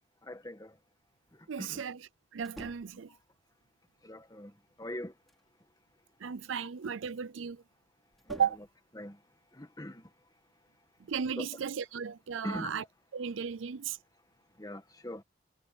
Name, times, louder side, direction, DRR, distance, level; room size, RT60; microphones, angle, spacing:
voice 1, 0.2-0.8 1.3-1.8 3.1-3.2 4.0-5.1 8.3-8.4 8.9-9.2 9.5-10.1 11.4-11.5 12.4-12.7 14.6-15.2, left 1 dB, 20° left, 1.7 m, -42 dB
voice 2, 1.5-3.1 6.2-7.6 8.3-8.6 11.1-12.8 13.1-14.0, right 7 dB, 90° right, 0.5 m, -35 dB
sound 1, 2.4-3.1 4.7-5.5 8.1-8.8, equal, ahead, 3.1 m, -50 dB
head